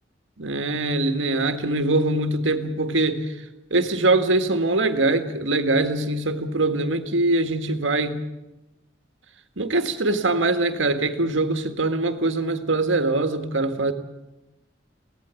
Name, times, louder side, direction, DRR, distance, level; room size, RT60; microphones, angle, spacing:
voice 1, 0.4-3.2 3.7-8.2 9.6-13.9, right 2 dB, 80° right, 8 dB, 1.7 m, -23 dB
24.0 x 17.5 x 8.2 m, 1.0 s
head